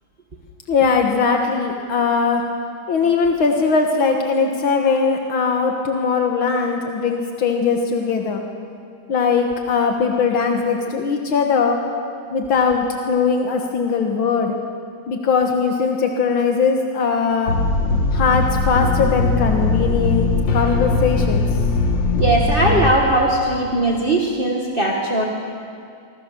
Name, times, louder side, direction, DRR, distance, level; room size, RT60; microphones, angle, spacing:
voice 1, 0.7-2.4 2.9-8.4 9.1-11.8 12.3-14.6 15.1-17.6 18.1-21.4, left 5 dB, 85° left, 2 dB, 2.2 m, -20 dB
sound 1, 17.5-22.9, left 3 dB, 65° left, 2.4 m, -20 dB
voice 2, 22.2-25.2, right 2 dB, 25° right, -1 dB, 1.9 m, -19 dB
25.5 x 25.0 x 6.8 m, 2.4 s
omnidirectional pair, 2.2 m